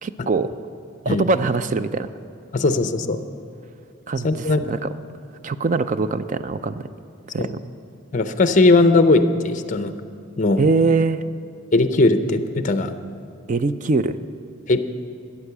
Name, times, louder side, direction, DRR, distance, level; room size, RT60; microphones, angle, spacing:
voice 1, 0.0-0.5 1.1-2.1 4.1-4.9 5.4-6.8 7.3-7.6 10.6-11.2 13.5-14.2, right 3 dB, 40° right, 12 dB, 0.4 m, -22 dB
voice 2, 2.5-3.2 4.2-4.8 7.4-7.5 8.1-9.9 10.4-10.6 11.7-12.9 14.7-14.8, left 2 dB, 40° left, 9 dB, 0.6 m, -18 dB
13.0 x 8.6 x 6.7 m, 2.4 s
head